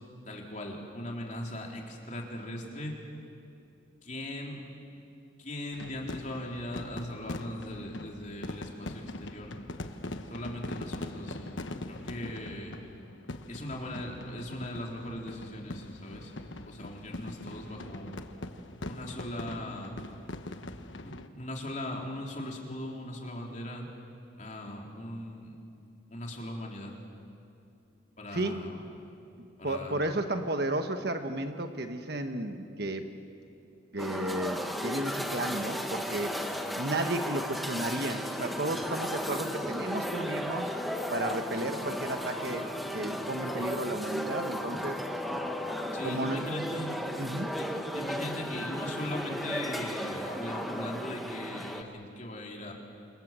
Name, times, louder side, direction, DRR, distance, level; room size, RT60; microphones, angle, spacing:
voice 1, 0.3-3.0 4.0-4.6 5.4-9.5 10.3-12.8 13.5-16.3 16.7-18.1 18.9-19.9 21.0-23.9 24.4-25.6 26.1-27.0 28.2-29.2 29.6-30.2 45.9-46.9 47.5-47.6 47.9-52.7, left 1 dB, 40° left, -1 dB, 3.9 m, -39 dB
sound 1, 5.7-21.3, left 2 dB, 70° left, 1.2 m, -42 dB
voice 2, 29.6-33.1 33.9-36.4 36.8-40.8 41.1-42.7 42.9-45.0 46.0-46.4 47.2-47.6, right 1 dB, 55° right, 6 dB, 1.3 m, -33 dB
sound 2, 34.0-51.8, equal, ahead, 1.4 m, -35 dB
28.0 x 27.0 x 7.6 m, 2.7 s
head